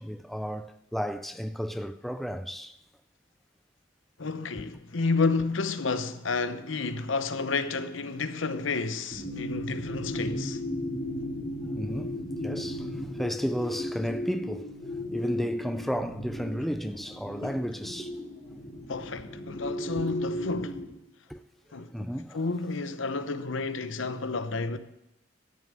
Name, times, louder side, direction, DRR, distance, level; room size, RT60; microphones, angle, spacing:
voice 1, 0.0-2.7 11.8-12.9 13.2-14.7 15.1-18.1 21.3-21.4 21.9-22.4, equal, ahead, 0.4 m, -33 dB
voice 2, 4.2-10.6 17.4-17.9 18.9-20.8 21.7-22.1 22.3-24.8, left 4 dB, 85° left, 0.8 m, -31 dB
sound 1, 9.1-20.8, left 1 dB, 35° left, 2.8 m, -35 dB
12.5 x 7.0 x 7.5 m
head